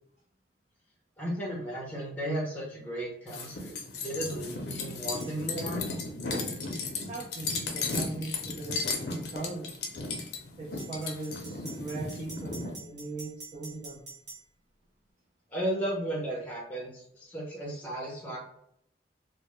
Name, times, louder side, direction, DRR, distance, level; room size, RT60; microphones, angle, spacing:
voice 1, 1.2-5.9 15.5-18.4, right 1 dB, 10° left, -4 dB, 0.6 m, -35 dB
sound 1, 3.3-12.7, left 3 dB, 70° left, 0.5 m, -35 dB
sound 2, 5.2-5.4 7.9-8.1 10.8-14.4, right 3 dB, 90° right, 1.0 m, -46 dB
voice 2, 7.1-9.7 10.6-14.0, right 3 dB, 40° right, -4 dB, 0.4 m, -39 dB
2.2 x 2.0 x 2.9 m, 0.69 s
head